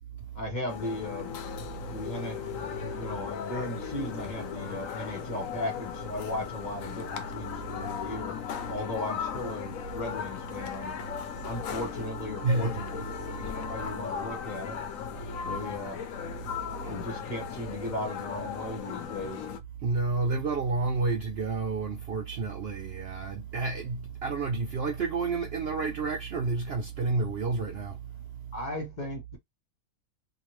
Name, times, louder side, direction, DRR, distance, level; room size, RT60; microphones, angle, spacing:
voice 1, 0.3-1.3 1.9-8.4 8.7-11.0 11.4-14.8 15.4-16.0 16.8-19.5 28.5-29.4, left 1 dB, 35° left, 1.0 m, -37 dB
sound 1, 0.7-19.6, left 7 dB, 70° left, 1.0 m, -37 dB
voice 2, 12.4-12.8 16.8-17.0 19.8-28.0, right 3 dB, 60° right, 0.7 m, -30 dB
2.8 x 2.7 x 3.1 m
omnidirectional pair, 1.5 m